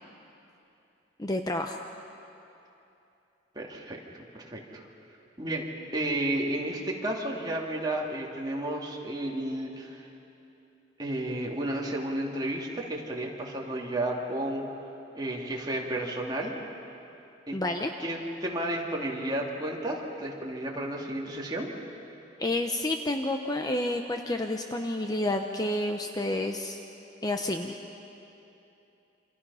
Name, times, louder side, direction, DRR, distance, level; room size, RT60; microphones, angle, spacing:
voice 1, 1.2-1.8 17.5-17.9 22.4-26.8 27.2-27.8, left 1 dB, 20° left, 4 dB, 0.8 m, -29 dB
voice 2, 3.5-4.0 4.5-4.8 5.4-10.1 11.0-14.6 15.1-16.6 17.5-17.6 18.0-21.7, right 1 dB, 20° right, -2 dB, 2.7 m, -32 dB
29.0 x 26.0 x 5.7 m, 2.9 s
head